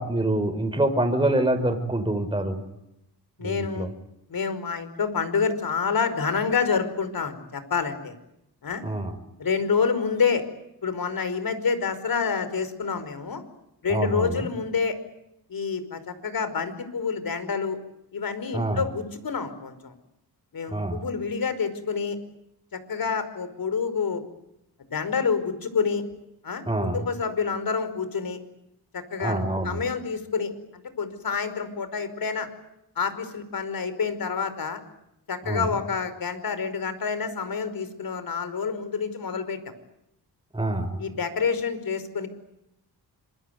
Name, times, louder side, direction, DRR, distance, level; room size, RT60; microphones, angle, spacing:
voice 1, 0.0-2.6 3.4-3.9 8.8-9.1 13.9-14.5 18.5-18.8 20.7-21.0 26.7-27.1 29.2-29.8 35.4-35.7 40.5-41.0, right 1 dB, 10° right, 6 dB, 5.2 m, -26 dB
voice 2, 3.4-3.9 4.3-8.1 8.6-8.8 9.4-10.5 10.8-13.4 13.8-15.0 15.5-17.8 18.1-19.9 20.5-22.2 22.7-24.2 24.9-26.0 26.4-26.6 26.9-28.4 28.9-30.5 31.0-32.5 33.0-34.8 35.3-39.6 41.0-42.3, left 5 dB, 60° left, 12 dB, 5.2 m, -28 dB
26.5 x 23.0 x 9.5 m, 0.83 s
cardioid pair, 70°, 40 cm